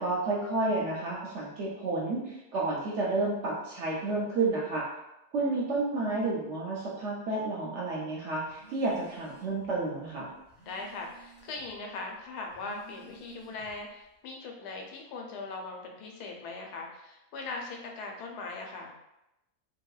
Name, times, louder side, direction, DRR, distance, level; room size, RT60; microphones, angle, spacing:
voice 1, 0.0-4.8 5.3-10.3, right 2 dB, 65° right, -4 dB, 0.7 m, -31 dB
Telephone, 8.5-9.7 10.1-11.8 12.4-13.9, right 4 dB, 30° left, 0.8 m, -55 dB
voice 2, 10.7-19.0, left 3 dB, 85° left, 1 dB, 1.1 m, -40 dB
3.1 x 2.8 x 2.3 m, 0.90 s
omnidirectional pair, 1.6 m